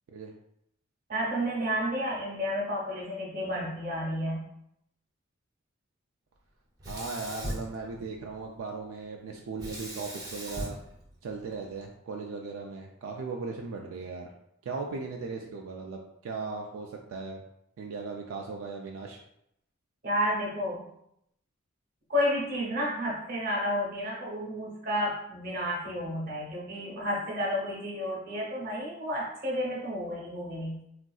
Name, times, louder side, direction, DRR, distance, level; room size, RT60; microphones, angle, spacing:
voice 1, 1.1-4.4 20.0-20.9 22.1-30.8, equal, 40° right, -3 dB, 0.8 m, -31 dB
Sink (filling or washing), 6.8-8.4 9.6-11.8, equal, 15° right, 0.5 m, -39 dB
voice 2, 6.9-10.8 11.2-14.3 14.6-17.4 17.8-19.2, right 4 dB, 80° right, 1 dB, 0.3 m, -37 dB
3.7 x 2.4 x 2.3 m, 0.76 s
head